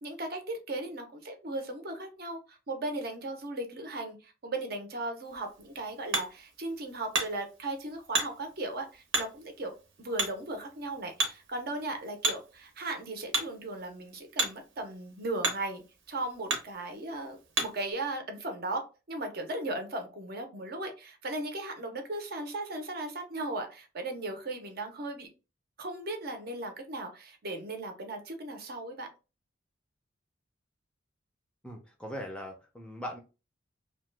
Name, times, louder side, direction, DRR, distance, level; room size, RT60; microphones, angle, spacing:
voice 1, 0.0-15.8 16.1-25.3 25.8-29.1, right 2 dB, 55° right, 5 dB, 0.7 m, -37 dB
Hammer, 5.3-17.9, right 3 dB, 85° right, 0.9 m, -36 dB
voice 2, 31.6-33.2, equal, 5° left, 2 dB, 0.4 m, -40 dB
2.9 x 2.2 x 3.2 m, 0.31 s
head